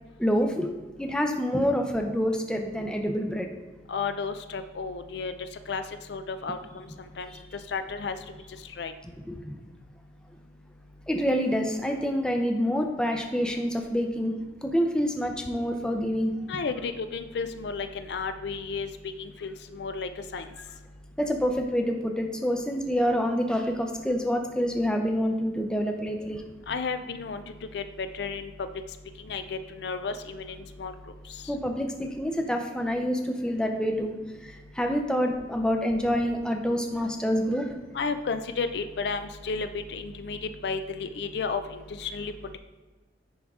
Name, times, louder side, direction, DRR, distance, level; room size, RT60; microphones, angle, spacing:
voice 1, 0.2-0.7 1.0-3.5 9.3-9.6 11.1-14.3 14.6-16.3 21.2-26.4 31.5-34.1 34.8-37.6, equal, 5° left, 3 dB, 0.5 m, -27 dB
voice 2, 3.9-5.3 5.7-5.8 6.1-6.6 7.2-7.3 7.7-8.2 8.8-8.9 16.5-18.9 19.2-20.5 26.7-27.4 27.7-28.5 29.3-30.9 37.9-40.4 40.6-42.6, left 4 dB, 65° left, 10 dB, 0.4 m, -32 dB
9.9 x 3.6 x 3.6 m, 1.2 s
head